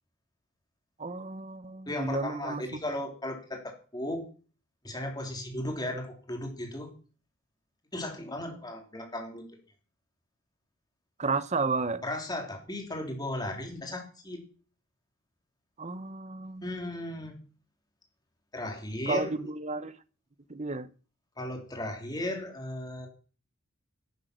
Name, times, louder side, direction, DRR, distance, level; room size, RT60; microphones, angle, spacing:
voice 1, 1.0-2.6 11.2-12.0 15.8-16.7 19.1-19.9 20.5-20.9, right 3 dB, 30° right, 0.8 m, -32 dB
voice 2, 1.9-4.3 4.8-6.9 7.9-9.5 12.0-14.5 16.6-17.4 18.5-19.3 21.4-23.1, left 1 dB, 20° left, 3.1 m, -36 dB
11.5 x 8.3 x 6.2 m
head